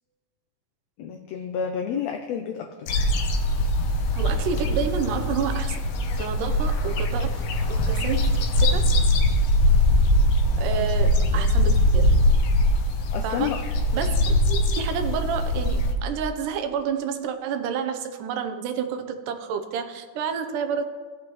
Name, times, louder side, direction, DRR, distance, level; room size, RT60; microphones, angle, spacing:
voice 1, 1.0-2.9 10.7-10.9 11.3-11.5 13.1-13.6, left 7 dB, 85° left, 5 dB, 1.5 m, -30 dB
sound 1, 2.9-15.9, left 1 dB, 70° left, 1.5 m, -22 dB
voice 2, 4.1-5.9 6.2-8.9 10.6-12.2 13.2-13.5 13.9-20.9, right 7 dB, 80° right, 7 dB, 2.3 m, -30 dB
17.0 x 7.1 x 3.0 m, 1.5 s
omnidirectional pair, 3.7 m